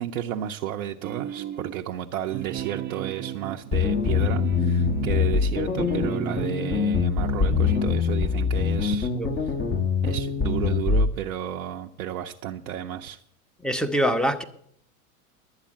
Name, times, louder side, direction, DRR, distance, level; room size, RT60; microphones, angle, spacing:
voice 1, 0.0-9.1 10.0-13.2, right 11 dB, 75° right, 2 dB, 0.8 m, -32 dB
sound 1, 1.0-1.9 2.3-6.9 7.3-7.8, right 11 dB, 25° right, 0.6 m, -35 dB
sound 2, 3.7-11.1, left 6 dB, 25° left, 1.3 m, -24 dB
voice 2, 13.6-14.4, equal, ahead, 8 dB, 1.0 m, -24 dB
11.5 x 8.3 x 7.5 m, 0.69 s
hypercardioid pair, 95°, 43 cm